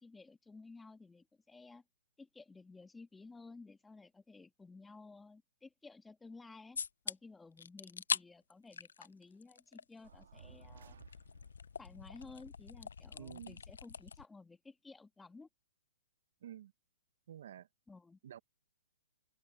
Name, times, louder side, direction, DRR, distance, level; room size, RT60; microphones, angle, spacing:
voice 1, 0.0-1.8 2.2-11.0 11.8-15.5 17.9-18.2, left 3 dB, 5° left, 2.2 m, -55 dB
sound 1, 6.8-7.1 7.6-8.2 8.5-9.8 10.1-14.2, left 6 dB, 85° left, 0.5 m, -42 dB
sound 2, 10.0-11.7, right 7 dB, 75° right, 1.9 m, -58 dB
voice 2, 13.2-13.6 16.4-16.7 17.3-17.7 18.2-18.4, right 10 dB, 60° right, 0.8 m, -49 dB
open air
hypercardioid pair, 155°, 0 cm